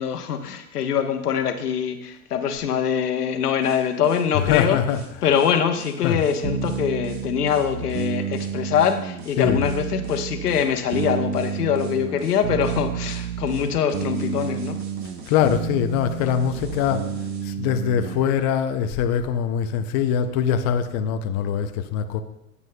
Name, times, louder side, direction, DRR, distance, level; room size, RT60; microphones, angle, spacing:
voice 1, 0.0-4.8 5.2-14.8, left 8 dB, 85° left, 7 dB, 1.1 m, -23 dB
sound 1, 3.6-17.5, right 3 dB, 45° right, 1.6 m, -45 dB
voice 2, 4.3-5.4 6.0-6.2 9.4-9.7 15.3-17.1 17.4-22.2, left 8 dB, 25° left, 7 dB, 0.4 m, -23 dB
sound 2, 6.4-18.3, right 7 dB, 75° right, 0.9 m, -30 dB
14.5 x 8.2 x 2.2 m, 0.80 s
hypercardioid pair, 120°, 45 cm